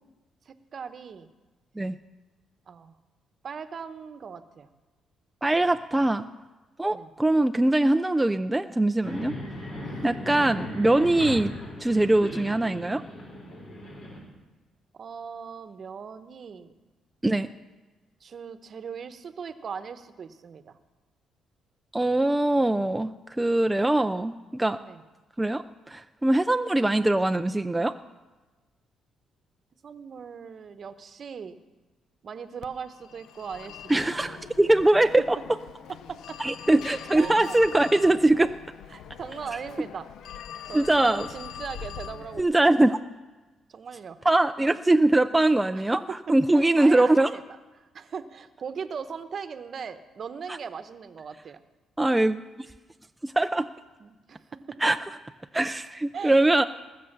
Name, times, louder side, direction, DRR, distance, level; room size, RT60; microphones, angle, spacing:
voice 1, 0.4-1.3 2.7-3.0 3.4-4.7 6.9-7.1 9.4-9.5 9.8-10.1 14.9-16.7 18.2-20.8 24.8-25.0 29.8-31.6 32.2-34.4 35.2-35.3 36.1-36.4 37.1-37.6 38.9-42.6 43.7-44.2 44.6-44.7 45.7-46.2 46.5-47.4 47.8-51.6 54.0-54.8 56.1-56.5, right 6 dB, 50° right, 11 dB, 0.9 m, -39 dB
voice 2, 5.4-6.3 6.8-9.4 10.0-11.5 11.8-13.0 17.2-17.5 21.9-24.8 25.4-27.9 33.9-35.4 36.4-38.5 40.7-41.3 42.4-43.0 44.3-46.0 46.3-47.3 52.0-52.4 53.2-53.7 54.8-55.0 55.5-56.6, right 2 dB, 10° right, 8 dB, 0.4 m, -22 dB
sound 1, 9.0-14.2, left 1 dB, 65° left, 5.5 m, -38 dB
Telephone, 32.6-42.4, left 9 dB, 80° left, 0.5 m, -42 dB
20.0 x 6.7 x 6.7 m, 1.2 s
cardioid pair, 90°, 0 cm